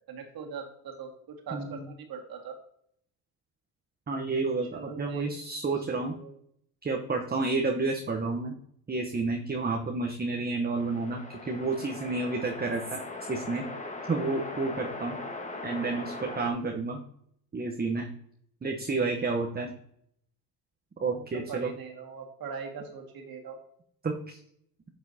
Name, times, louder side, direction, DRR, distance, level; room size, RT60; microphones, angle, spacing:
voice 1, 0.0-2.6 4.7-5.3 5.9-6.3 21.1-23.6, right 6 dB, 55° right, 2 dB, 2.1 m, -41 dB
voice 2, 4.1-6.1 6.8-8.5 8.9-13.0 13.3-13.6 14.1-15.2 15.6-17.0 17.5-18.1 18.6-19.7 21.0-21.7 24.0-24.4, right 3 dB, 20° right, 2 dB, 1.0 m, -30 dB
sound 1, 10.8-16.5, left 2 dB, 15° left, 1.4 m, -39 dB
8.4 x 6.1 x 2.8 m, 0.68 s
supercardioid pair, 70°, 43 cm